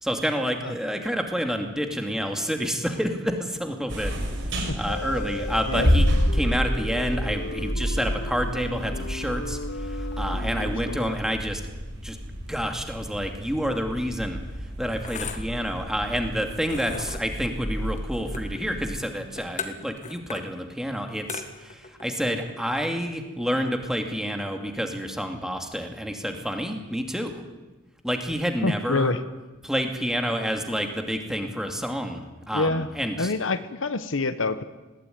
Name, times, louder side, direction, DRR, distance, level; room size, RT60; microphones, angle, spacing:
voice 1, 0.0-4.1 4.8-6.1 6.3-11.6 11.9-14.4 14.8-27.3 28.0-29.1 29.6-33.3, equal, 5° right, 4 dB, 2.5 m, -29 dB
sound 1, 3.9-18.9, equal, 65° right, 5.7 m, -29 dB
sound 2, 4.9-11.2, left 3 dB, 60° left, 0.9 m, -36 dB
voice 2, 10.6-11.0 16.9-17.1 22.3-22.4 28.6-29.2 32.5-32.9 33.2-34.6, left 3 dB, 80° left, 12 dB, 1.2 m, -27 dB
sound 3, 13.9-23.7, left 5 dB, 40° left, 1.8 m, -41 dB
20.5 x 17.0 x 9.5 m, 1.1 s
head